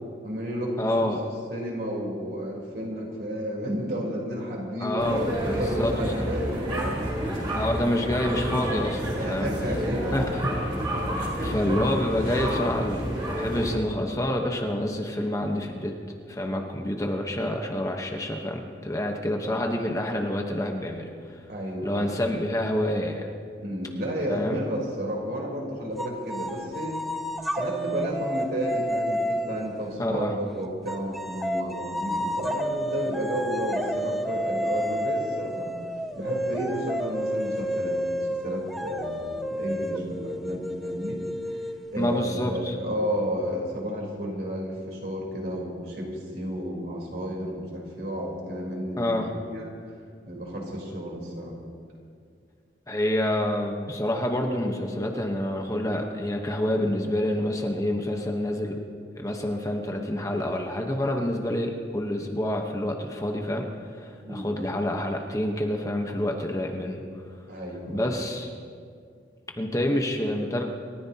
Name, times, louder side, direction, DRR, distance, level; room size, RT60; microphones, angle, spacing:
voice 1, 0.2-1.1 1.5-7.1 7.3-7.6 9.2-10.2 11.4-11.7 16.4-16.6 19.1-19.3 21.5-22.1 23.6-27.0 27.5-35.7 36.1-41.7 41.9-49.7 50.3-51.6 64.2-64.5 67.5-68.1, equal, 60° right, -2 dB, 3.8 m, -32 dB
voice 2, 0.8-1.2 4.8-6.2 7.5-9.5 10.1-10.2 11.1-16.0 16.3-21.4 21.8-23.3 24.3-24.6 30.0-30.3 42.0-42.7 49.0-49.3 52.9-58.8 59.2-67.0 67.9-68.5 69.6-70.6, left 1 dB, 20° left, 2 dB, 1.1 m, -28 dB
sound 1, 5.0-13.7, equal, 30° right, 3.5 m, -29 dB
sound 2, 26.0-29.9 30.9-42.2, equal, ahead, 0.5 m, -30 dB
28.0 x 14.5 x 2.9 m, 2.2 s
head